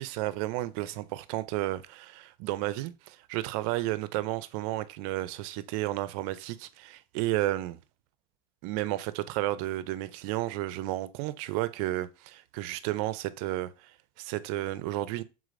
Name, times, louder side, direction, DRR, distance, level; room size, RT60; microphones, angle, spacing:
voice 1, 0.0-7.8 8.6-15.2, right 16 dB, 70° right, 0.4 m, -32 dB
4.9 x 3.6 x 2.5 m
supercardioid pair, 135°, 18 cm